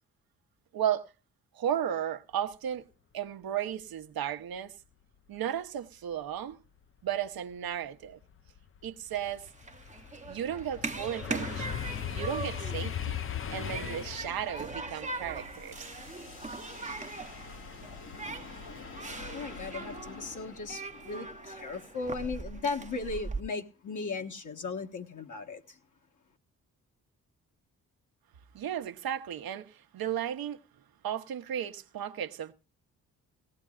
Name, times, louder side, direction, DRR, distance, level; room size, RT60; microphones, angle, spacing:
voice 1, 0.7-1.1 1.5-2.8 3.1-4.7 5.3-6.6 7.0-8.2 8.8-9.5 10.3-13.2 13.5-15.9 28.5-30.6 31.0-32.5, right 10 dB, 65° right, 1.0 m, -34 dB
sound 1, 7.7-7.8 8.2-17.3 17.7-18.1, left 9 dB, 35° left, 0.6 m, -39 dB
Human group actions, 9.1-23.4, right 3 dB, 20° right, 0.8 m, -41 dB
sound 2, 14.3-22.8, left 4 dB, 80° left, 2.5 m, -48 dB
voice 2, 19.3-25.8, left 4 dB, 50° left, 1.4 m, -37 dB
18.0 x 15.5 x 2.4 m
supercardioid pair, 50°, 38 cm